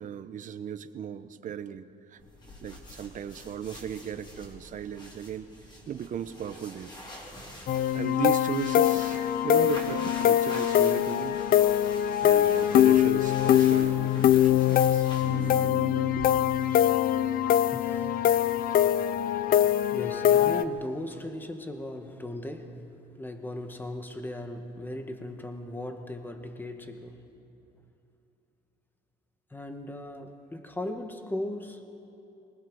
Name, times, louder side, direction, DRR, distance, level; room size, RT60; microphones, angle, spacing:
voice 1, 0.0-2.2 2.6-5.5 5.9-6.9 7.9-11.4 12.2-15.1 16.1-16.3, right 9 dB, 50° right, 11 dB, 1.0 m, -36 dB
sound 1, 2.2-15.8, left 1 dB, 25° left, 4.6 m, -46 dB
sound 2, 7.7-20.6, left 11 dB, 60° left, 0.7 m, -23 dB
sound 3, 15.2-20.4, right 5 dB, 25° right, 2.0 m, -43 dB
voice 2, 17.7-18.3 19.9-22.9 23.2-27.2 29.5-31.8, left 1 dB, 10° left, 6 dB, 1.9 m, -37 dB
24.0 x 20.0 x 6.5 m, 2.8 s
cardioid pair, 110°, 17 cm